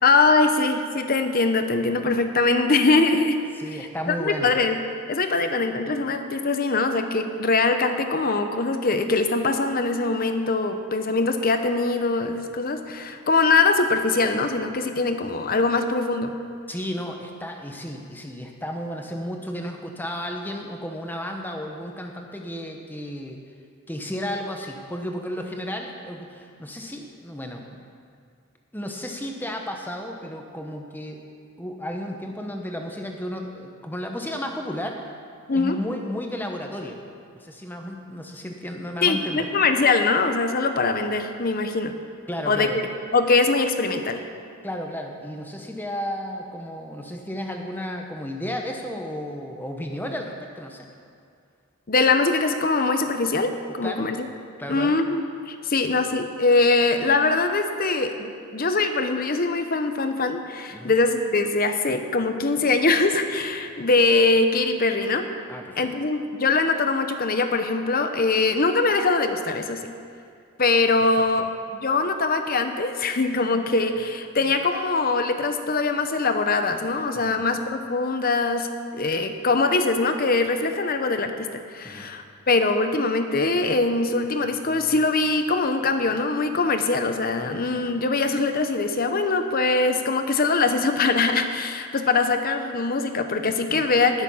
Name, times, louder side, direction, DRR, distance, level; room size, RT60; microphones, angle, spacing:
voice 1, 0.0-3.4 3.7-4.8 5.1-16.3 35.5-35.8 39.0-41.9 42.5-42.7 43.1-44.2 51.9-53.5 53.8-54.2 54.7-65.2 65.8-69.8 70.6-71.4 71.8-78.7 78.9-94.2, left 3 dB, 40° left, 7 dB, 0.8 m, -22 dB
voice 2, 3.6-4.5 16.7-23.4 23.9-27.8 28.7-31.2 31.6-35.0 35.5-37.0 37.3-39.5 42.3-42.8 44.6-50.9 53.8-54.1 54.6-55.0 60.7-60.9 65.5-65.9 71.0-71.1 77.1-77.5 81.8-82.1 93.7-93.9, equal, 10° left, 2 dB, 1.0 m, -33 dB
19.0 x 7.1 x 5.7 m, 2.3 s
head